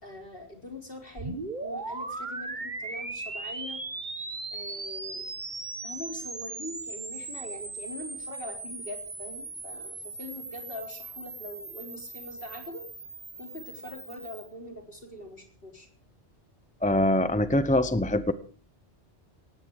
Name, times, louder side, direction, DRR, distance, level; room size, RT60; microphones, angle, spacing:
voice 1, 0.0-3.8 4.5-5.4 5.8-12.8 13.4-15.9, left 1 dB, 55° left, 3 dB, 4.3 m, -42 dB
sound 1, 1.2-14.5, right 3 dB, 45° right, 1.9 m, -38 dB
voice 2, 16.8-18.3, left 1 dB, 10° left, 13 dB, 0.8 m, -23 dB
18.5 x 16.0 x 4.7 m, 0.39 s
omnidirectional pair, 1.1 m